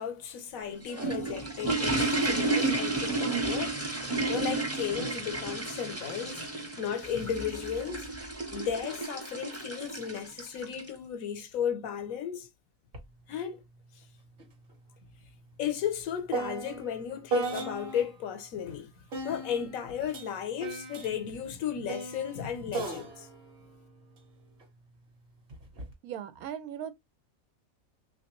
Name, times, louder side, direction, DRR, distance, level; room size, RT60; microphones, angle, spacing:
voice 1, 0.0-3.8 4.3-6.5 6.8-8.1 8.5-12.5 13.3-13.6 14.0-14.1 15.6-18.9 19.2-23.3, left 8 dB, 80° left, 1.1 m, -34 dB
sound 1, 0.6-10.9, right 2 dB, 15° right, 0.6 m, -32 dB
sound 2, 12.9-13.1 13.4-18.2 19.1-24.7 25.5-25.9, right 3 dB, 50° right, 1.1 m, -37 dB
voice 2, 26.0-26.9, right 9 dB, 90° right, 1.1 m, -38 dB
3.2 x 2.6 x 2.9 m
omnidirectional pair, 1.5 m